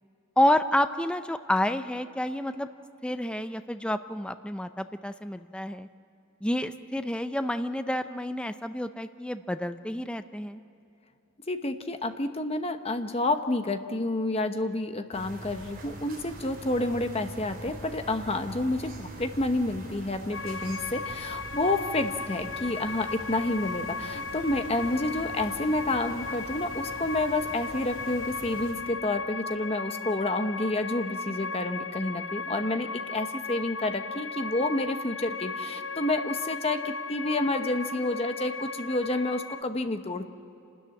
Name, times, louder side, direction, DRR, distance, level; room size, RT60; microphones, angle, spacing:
voice 1, 0.4-2.7 3.0-5.9 6.4-10.6, left 1 dB, 5° left, 10 dB, 0.5 m, -29 dB
voice 2, 11.5-40.3, left 2 dB, 30° left, 8 dB, 1.0 m, -29 dB
sound 1, 15.1-28.7, right 1 dB, 45° right, 3.9 m, -44 dB
sound 2, 20.3-39.6, left 4 dB, 60° left, 0.7 m, -36 dB
28.0 x 13.0 x 9.6 m, 2.8 s
head